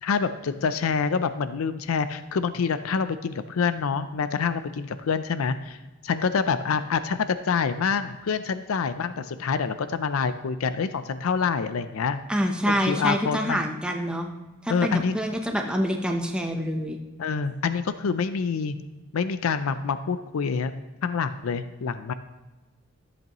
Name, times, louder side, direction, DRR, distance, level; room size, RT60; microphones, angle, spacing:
voice 1, 0.0-5.8 6.0-12.2 12.7-13.6 14.7-15.2 17.2-18.8 19.1-20.7 21.0-22.1, left 5 dB, 85° left, 12 dB, 0.5 m, -26 dB
voice 2, 12.3-14.3 14.6-17.0, equal, 5° right, 2 dB, 0.7 m, -26 dB
13.5 x 7.9 x 3.0 m, 1.2 s
head